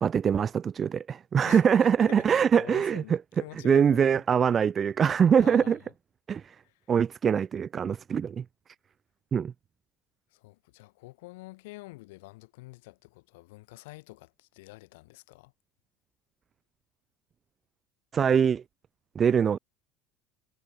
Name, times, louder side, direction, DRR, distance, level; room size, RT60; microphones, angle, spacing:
voice 1, 0.0-3.0 3.6-5.8 6.3-6.6 6.9-8.4 9.3-9.5 18.1-18.6 19.2-19.6, right 7 dB, 30° right, 0.5 m, -23 dB
voice 2, 1.4-4.2 5.4-5.9 6.6-6.8 10.3-15.5, left 22 dB, 90° left, 3.3 m, -47 dB
supercardioid pair, 130°, 0 cm